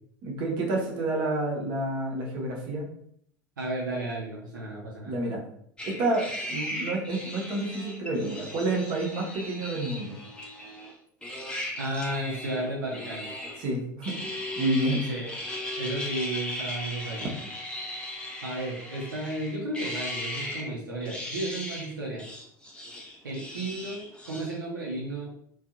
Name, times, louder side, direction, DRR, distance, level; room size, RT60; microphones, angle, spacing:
voice 1, 0.2-2.9 5.1-5.4 5.8-10.2 13.6-14.3 14.6-15.1, right 2 dB, 45° right, -1 dB, 0.7 m, -29 dB
voice 2, 3.6-5.2 11.8-13.3 15.1-15.4 15.8-17.3 18.4-22.2 23.2-25.3, right 1 dB, 75° right, -3 dB, 0.5 m, -33 dB
sound 1, 5.8-10.9 11.2-13.7 14.0-20.7 21.0-21.9 22.2-24.6, left 1 dB, 10° left, 0.7 m, -37 dB
2.6 x 2.3 x 2.4 m, 0.68 s
figure-of-eight pair, 70°, 11 cm